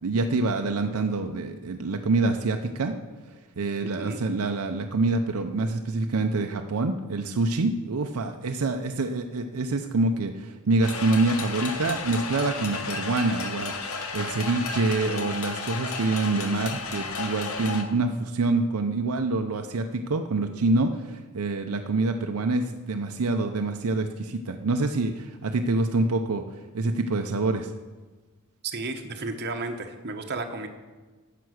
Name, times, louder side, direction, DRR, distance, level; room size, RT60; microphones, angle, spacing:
voice 1, 0.0-2.9 3.6-26.4 26.7-27.7, right 3 dB, 80° right, 5 dB, 0.6 m, -26 dB
voice 2, 3.8-4.2 28.6-30.7, right 3 dB, 50° right, 5 dB, 1.0 m, -33 dB
sound 1, 10.8-17.8, left 4 dB, 75° left, 1.0 m, -33 dB
9.3 x 6.8 x 6.3 m, 1.3 s
head